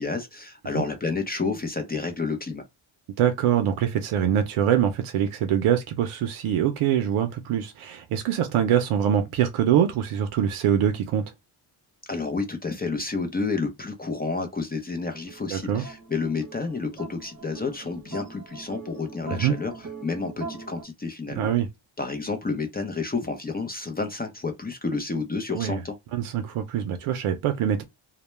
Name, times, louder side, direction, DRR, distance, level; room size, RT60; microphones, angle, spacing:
voice 1, 0.0-2.6 12.1-21.5 22.0-26.0, left 4 dB, 20° left, 0.5 m, -30 dB
voice 2, 3.2-11.3 15.5-15.8 19.3-19.5 21.4-21.7 25.5-25.8 26.1-27.8, right 9 dB, 90° right, 0.6 m, -24 dB
sound 1, 15.1-20.8, right 5 dB, 35° right, 0.8 m, -42 dB
2.2 x 2.1 x 3.0 m
cardioid pair, 100°, 48 cm